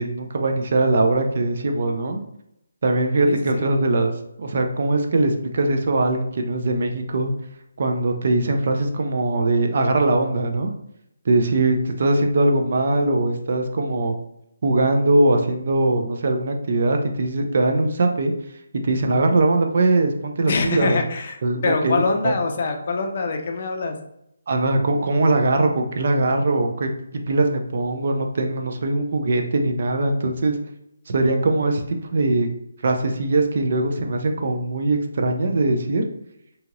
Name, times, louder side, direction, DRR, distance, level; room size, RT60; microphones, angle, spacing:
voice 1, 0.0-2.2 2.8-4.1 4.4-7.3 7.8-10.7 11.3-14.2 14.6-18.3 18.8-21.0 21.4-22.3 24.5-26.9 27.3-30.5 31.1-32.5 32.8-36.0, right 2 dB, 50° right, 4 dB, 0.4 m, -21 dB
voice 2, 3.3-3.7 20.5-24.0, left 3 dB, 45° left, 3 dB, 0.4 m, -24 dB
2.8 x 2.8 x 2.5 m, 0.78 s
hypercardioid pair, 165°, 0 cm